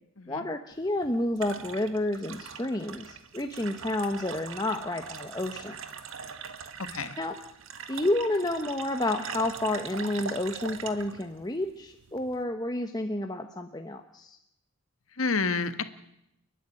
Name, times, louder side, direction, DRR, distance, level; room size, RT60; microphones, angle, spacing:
voice 1, 0.3-5.8 7.2-7.4 7.9-14.4, left 1 dB, 20° left, 5 dB, 1.0 m, -30 dB
sound 1, 0.7-12.4, right 6 dB, 75° right, 1.7 m, -42 dB
voice 2, 15.2-15.8, left 4 dB, 80° left, 10 dB, 1.6 m, -29 dB
29.5 x 10.0 x 9.9 m, 0.82 s
head